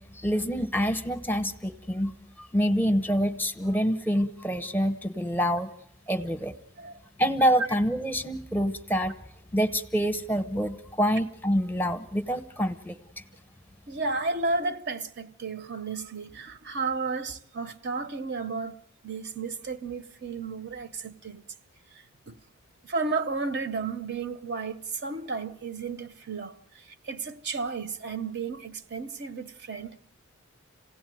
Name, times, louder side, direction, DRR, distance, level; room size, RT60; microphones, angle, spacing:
voice 1, 0.1-2.1 2.4-5.7 6.1-6.5 7.2-9.1 9.5-13.2, equal, 10° left, 0.8 m, -26 dB
voice 2, 13.9-18.8 19.0-21.4 21.9-22.4 22.8-30.0, right 4 dB, 50° right, 0.9 m, -33 dB
27.5 x 17.0 x 9.2 m
head